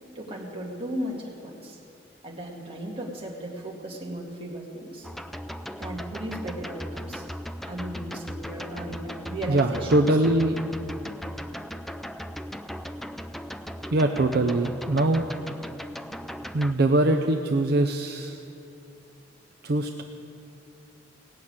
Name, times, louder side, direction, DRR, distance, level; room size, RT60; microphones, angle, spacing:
voice 1, 0.2-1.8 2.2-5.1 5.8-7.3 7.6-10.0, right 1 dB, 30° right, -2 dB, 2.0 m, -36 dB
sound 1, 5.0-16.7, equal, ahead, 0.4 m, -37 dB
voice 2, 9.5-10.6 13.9-15.2 16.5-18.4 19.6-20.0, right 2 dB, 60° right, 3 dB, 0.6 m, -22 dB
17.5 x 6.5 x 8.7 m, 2.6 s
head